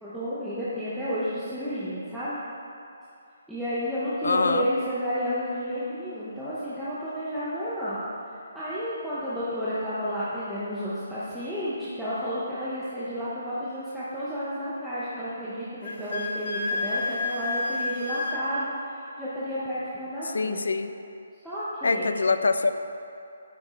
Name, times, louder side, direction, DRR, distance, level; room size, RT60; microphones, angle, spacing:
voice 1, 0.0-2.4 3.5-20.6 21.4-22.1, equal, ahead, -14 dB, 0.6 m, -31 dB
voice 2, 4.2-4.7 20.3-20.9 21.8-22.7, left 4 dB, 85° left, 10 dB, 0.4 m, -24 dB
Wind instrument woodwind instrument, 15.8-18.4, left 3 dB, 45° left, 0.7 m, -30 dB
9.2 x 5.1 x 3.9 m, 2.6 s
hypercardioid pair, 180°, 0 cm